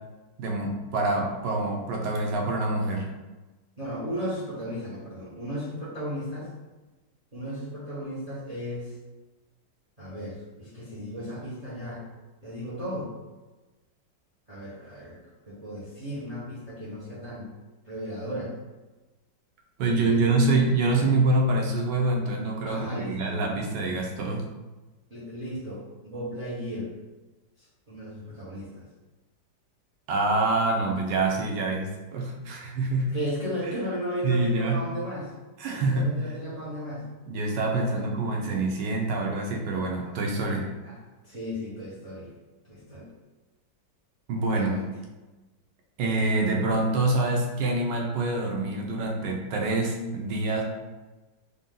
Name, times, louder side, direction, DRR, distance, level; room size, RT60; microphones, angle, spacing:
voice 1, 0.4-3.1 19.8-24.4 30.1-33.1 34.2-34.8 35.6-36.1 37.3-40.7 44.3-44.7 46.0-50.6, right 2 dB, 75° right, 0 dB, 1.3 m, -26 dB
voice 2, 3.8-6.5 7.3-8.9 10.0-12.0 12.4-13.1 14.5-15.2 15.5-17.5 17.8-18.5 19.9-20.4 22.7-23.4 25.1-26.9 27.6-28.8 33.1-35.3 35.7-37.0 37.8-38.0 40.8-42.3 42.6-43.1 44.5-44.9, equal, 30° right, -8 dB, 0.7 m, -35 dB
3.7 x 2.8 x 3.6 m, 1.2 s
omnidirectional pair, 2.0 m